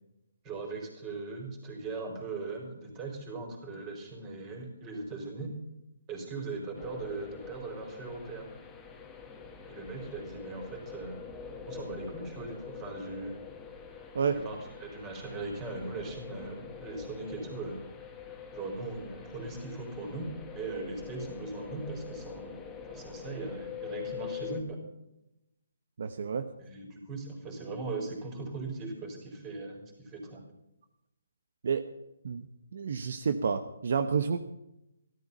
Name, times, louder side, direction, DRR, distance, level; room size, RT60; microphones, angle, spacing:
voice 1, 0.4-5.5 6.1-8.5 9.7-11.2 11.6-13.3 14.3-17.8 18.5-20.3 20.5-24.8 26.6-30.4, right 3 dB, 20° right, 3 dB, 4.3 m, -39 dB
sound 1, 6.7-24.6, left 7 dB, 10° left, 1.7 m, -45 dB
voice 2, 26.0-26.5 31.6-31.8 32.2-32.5 32.7-34.4, right 6 dB, 60° right, 9 dB, 1.0 m, -29 dB
14.0 x 13.0 x 5.5 m, 0.88 s
hypercardioid pair, 155°, 0 cm